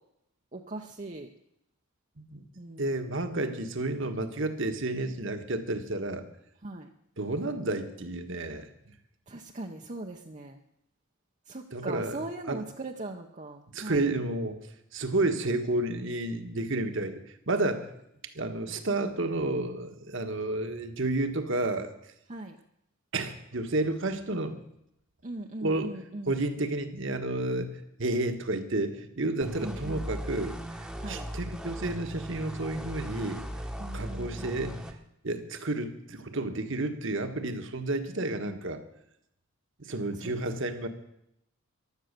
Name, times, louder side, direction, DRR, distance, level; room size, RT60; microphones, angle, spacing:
voice 1, 0.5-1.3 2.6-2.9 6.6-6.9 9.3-10.6 11.5-14.1 18.7-18.8 22.3-22.6 25.2-26.4 29.6-30.1 31.0-31.3 33.8-34.8 40.1-40.3, right 2 dB, 35° right, 2 dB, 0.8 m, -40 dB
voice 2, 2.8-6.2 7.2-8.7 11.7-12.2 12.5-12.6 13.7-14.6 14.9-17.9 18.2-21.9 23.1-24.6 25.6-25.9 26.3-33.6 33.9-35.0 35.2-38.8 39.8-40.9, right 2 dB, 55° right, 8 dB, 1.4 m, -31 dB
sound 1, 29.4-34.9, equal, 5° right, 1.1 m, -38 dB
15.5 x 12.0 x 6.7 m, 0.79 s
head